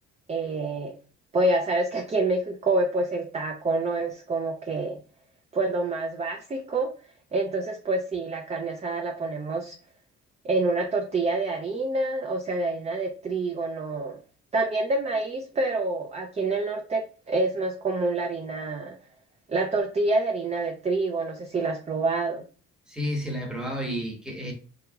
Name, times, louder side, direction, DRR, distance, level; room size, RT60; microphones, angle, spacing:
voice 1, 0.3-0.9 1.3-5.0 5.5-6.9 7.3-9.8 10.4-14.2 14.5-19.0 19.5-22.4, right 2 dB, 20° right, 0.5 m, -27 dB
voice 2, 22.9-24.5, equal, ahead, 1.1 m, -31 dB
2.7 x 2.7 x 2.3 m
cardioid pair, 90°, 30 cm